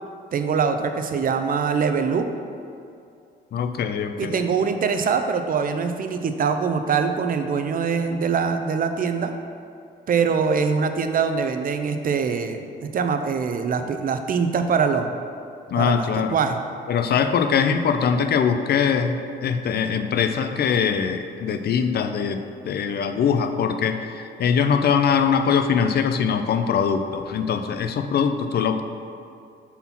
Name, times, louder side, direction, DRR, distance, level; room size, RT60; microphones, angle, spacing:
voice 1, 0.3-2.3 4.2-9.3 10.1-15.2 15.8-16.6, right 5 dB, 45° right, 7 dB, 0.6 m, -23 dB
voice 2, 3.5-4.5 15.7-16.4 16.9-28.8, left 7 dB, 55° left, 7 dB, 0.5 m, -22 dB
5.5 x 4.3 x 5.8 m, 2.5 s
cardioid pair, 90°, 20 cm